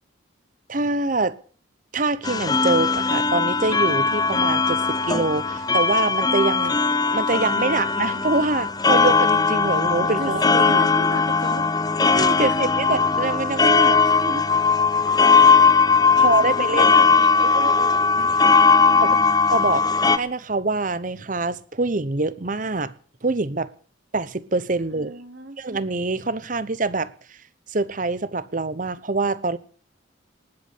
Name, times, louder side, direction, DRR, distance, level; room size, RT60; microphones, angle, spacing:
voice 1, 0.7-1.4 1.9-6.7 7.1-10.8 12.0-14.0 14.2-14.4 16.2-16.9 18.2-18.3 19.0-19.2 19.5-22.9 23.2-23.7 24.1-25.2 25.6-27.4 27.7-29.6, right 3 dB, 45° right, 0.9 m, -25 dB
sound 1, 2.2-20.2, left 4 dB, 20° left, 0.7 m, -19 dB
voice 2, 7.6-8.5 10.0-11.7 12.3-12.8 16.1-18.4 18.7-19.3 24.9-25.6, right 1 dB, 60° right, 2.7 m, -36 dB
19.5 x 8.4 x 8.3 m
head